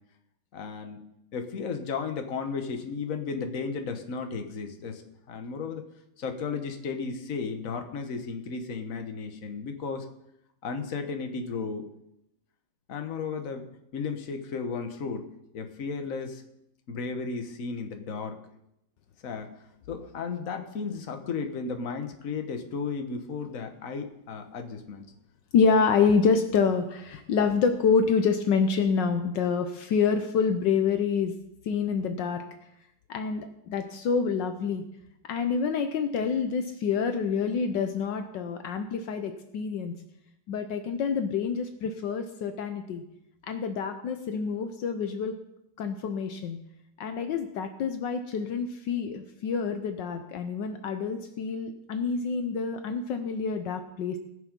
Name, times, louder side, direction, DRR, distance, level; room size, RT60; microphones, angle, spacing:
voice 1, 0.5-1.0 1.3-5.8 6.2-10.1 10.6-11.8 12.9-13.7 13.9-15.3 15.5-16.4 16.9-18.4 19.2-19.5 19.9-25.0, left 5 dB, 50° left, 5 dB, 1.5 m, -34 dB
voice 2, 25.5-31.3 31.7-32.4 33.1-34.8 35.3-39.9 40.5-43.0 43.4-45.4 45.8-46.6 47.0-54.2, left 5 dB, 75° left, 7 dB, 1.4 m, -27 dB
19.0 x 6.7 x 5.3 m, 0.82 s
omnidirectional pair, 2.0 m